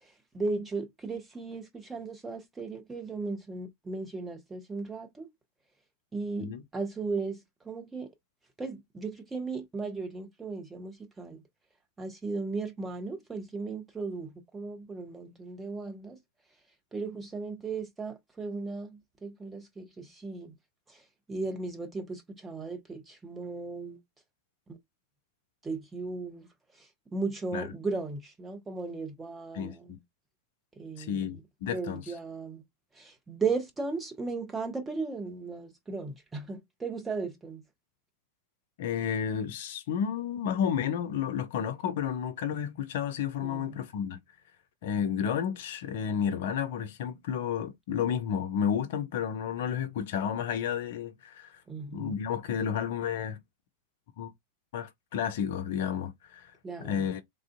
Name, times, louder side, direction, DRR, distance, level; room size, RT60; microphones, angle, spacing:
voice 1, 0.0-5.3 6.1-7.4 7.6-8.1 8.6-11.4 12.0-16.2 16.9-20.5 20.9-21.0 21.3-24.0 24.7-24.8 25.6-26.5 26.8-30.0 30.8-31.4 31.7-32.6 32.9-37.6 43.4-43.8 51.7-52.2 56.6-57.1, right 4 dB, 10° right, 0.9 m, -36 dB
voice 2, 29.5-30.0 31.0-32.0 38.8-44.2 44.8-51.6 51.9-53.4 54.2-54.3 54.7-56.5 56.8-57.2, left 8 dB, 55° left, 0.5 m, -31 dB
3.3 x 2.5 x 2.5 m
figure-of-eight pair, 90°, 0 cm